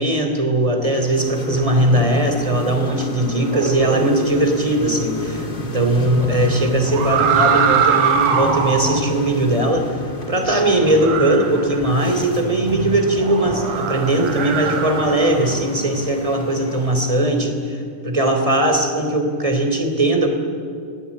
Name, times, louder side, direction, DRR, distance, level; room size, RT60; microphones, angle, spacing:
voice 1, 0.0-10.0 10.3-20.3, right 1 dB, 10° right, 4 dB, 2.9 m, -19 dB
sound 1, 0.8-17.5, left 1 dB, 25° left, 1.2 m, -30 dB
sound 2, 3.5-4.5 6.9-9.1 10.8-12.1 13.2-15.5, right 6 dB, 75° right, 3.7 m, -22 dB
28.5 x 20.0 x 8.7 m, 2.4 s
omnidirectional pair, 4.2 m